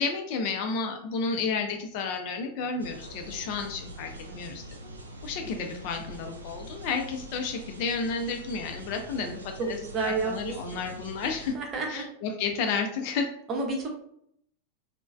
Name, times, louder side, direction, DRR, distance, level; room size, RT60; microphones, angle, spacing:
voice 1, 0.0-4.9 5.2-9.8 10.0-11.5 11.9-13.3, left 5 dB, 45° left, 4 dB, 0.4 m, -31 dB
sound 1, 2.8-11.6, right 1 dB, 75° right, 0.4 m, -44 dB
voice 2, 9.1-10.6 11.5-12.0 13.5-13.9, right 3 dB, 30° right, 0 dB, 0.7 m, -31 dB
3.1 x 2.1 x 2.3 m, 0.70 s
figure-of-eight pair, 90°, 0 cm